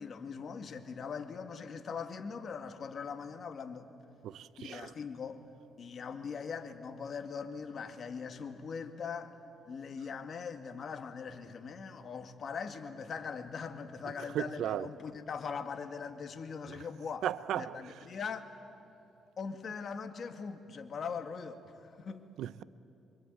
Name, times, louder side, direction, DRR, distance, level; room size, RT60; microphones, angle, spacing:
voice 1, 0.0-3.9 4.6-5.4 5.8-9.4 9.7-17.3 17.5-18.5 19.4-22.3, left 6 dB, 50° left, 2.0 m, -41 dB
voice 2, 4.2-4.9 14.3-14.9 17.2-17.8 22.4-22.6, right 11 dB, 80° right, 0.7 m, -35 dB
25.5 x 25.0 x 9.3 m
cardioid pair, 90°, 0 cm